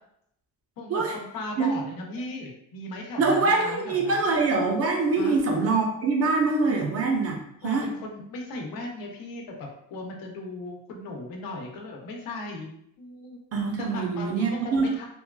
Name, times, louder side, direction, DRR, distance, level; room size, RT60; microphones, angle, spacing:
voice 1, 0.8-4.3 5.2-5.3 6.6-6.8 7.6-12.7 13.0-13.4 13.8-15.0, left 2 dB, 85° left, 0 dB, 0.7 m, -37 dB
voice 2, 3.2-7.4 7.6-7.9 13.5-14.9, right 3 dB, 45° right, 1 dB, 0.6 m, -24 dB
3.0 x 2.3 x 2.2 m, 0.74 s
cardioid pair, 145°, 34 cm